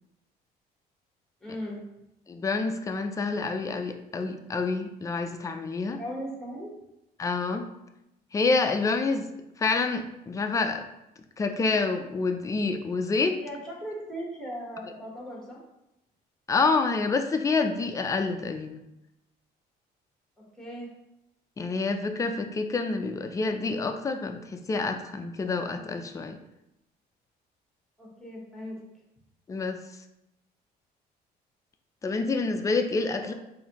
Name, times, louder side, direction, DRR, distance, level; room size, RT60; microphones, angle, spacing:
voice 1, 1.4-1.8 5.9-6.8 13.4-15.6 20.6-20.9 28.0-28.8 33.2-33.3, equal, 5° left, -3 dB, 1.2 m, -38 dB
voice 2, 2.3-6.0 7.2-7.7 8.3-9.3 9.6-10.9 11.4-13.4 16.5-18.8 21.6-26.4 29.5-29.8 32.0-33.3, left 4 dB, 20° left, 6 dB, 0.4 m, -27 dB
4.0 x 2.6 x 2.9 m, 0.88 s
cardioid pair, 110°, 17 cm